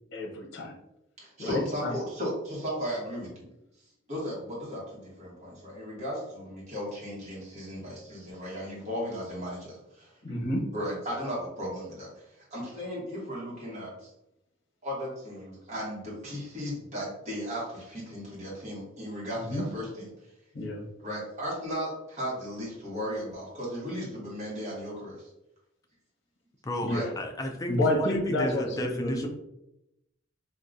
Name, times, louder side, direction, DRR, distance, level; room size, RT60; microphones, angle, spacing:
voice 1, 0.1-0.8 1.4-2.0 10.2-10.6 19.4-19.7 20.5-20.9 26.8-27.1 27.7-29.3, left 1 dB, 60° left, -1 dB, 0.7 m, -29 dB
voice 2, 1.2-3.5 4.1-10.1 10.7-12.2 12.5-14.1 14.8-20.1 21.0-25.3 26.9-27.0, equal, 35° right, -5 dB, 1.2 m, -36 dB
voice 3, 26.6-29.3, left 1 dB, 20° left, 4 dB, 0.3 m, -33 dB
3.5 x 2.3 x 2.5 m, 0.86 s
head